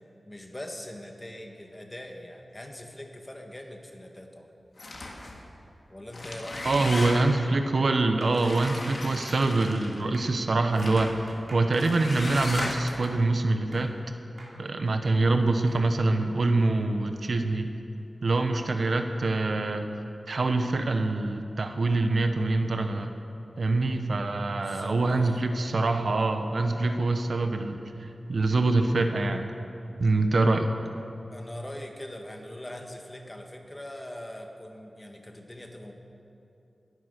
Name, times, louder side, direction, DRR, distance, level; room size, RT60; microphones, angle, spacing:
voice 1, 0.2-4.5 5.9-6.6 18.5-18.9 24.5-25.4 31.3-35.9, left 1 dB, 20° left, 3 dB, 1.6 m, -42 dB
sound 1, 4.8-5.4 6.0-7.5 8.3-10.1 10.7-11.2 11.7-13.1, left 2 dB, 50° left, 2.1 m, -36 dB
voice 2, 6.6-13.9 14.6-17.7 18.2-19.9 20.3-23.1 23.6-29.5 30.0-30.7, right 2 dB, 65° right, 6 dB, 1.0 m, -25 dB
sound 2, 8.2-14.1 14.4-15.8, right 1 dB, 45° right, 2.8 m, -50 dB
20.0 x 9.6 x 6.6 m, 2.9 s
wide cardioid pair, 105°, 0 cm